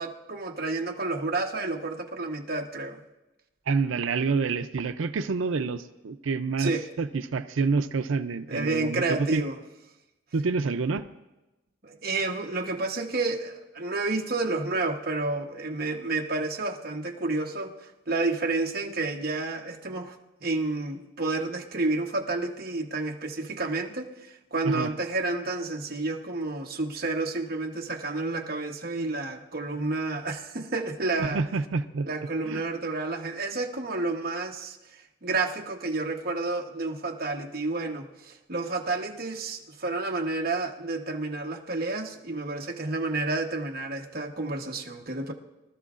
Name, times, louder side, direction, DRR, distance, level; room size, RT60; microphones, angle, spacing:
voice 1, 0.0-3.0 6.6-6.9 8.5-9.6 11.8-20.1 20.4-31.4 32.0-34.8 35.2-45.3, right 3 dB, 45° right, 1 dB, 1.1 m, -30 dB
voice 2, 3.7-9.5 10.3-11.1 24.6-24.9 29.0-29.1 31.2-32.1 32.4-32.6, right 4 dB, 80° right, 10 dB, 0.5 m, -28 dB
23.5 x 13.0 x 2.5 m, 1.0 s
head